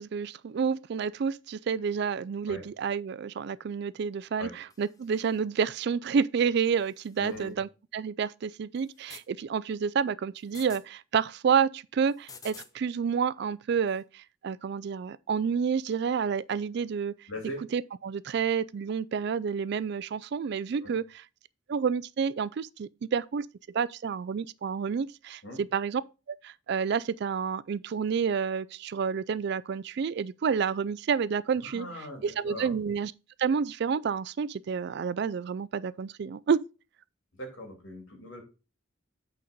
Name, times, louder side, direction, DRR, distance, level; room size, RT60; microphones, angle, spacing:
voice 1, 0.0-17.1 17.7-21.2 21.7-23.5 23.7-26.0 26.4-31.8 32.2-33.1 33.4-36.6, right 6 dB, 55° right, 0.3 m, -29 dB
sound 1, 4.7-5.4 6.7-7.5 8.7-9.3 10.4-10.8 12.1-12.7 13.9-14.0, left 5 dB, 20° left, 0.6 m, -51 dB
voice 2, 7.2-7.6 17.3-17.6 20.7-21.0 25.4-25.6 31.6-32.7 37.4-38.4, left 1 dB, 70° left, 2.8 m, -40 dB
8.4 x 4.1 x 5.1 m
head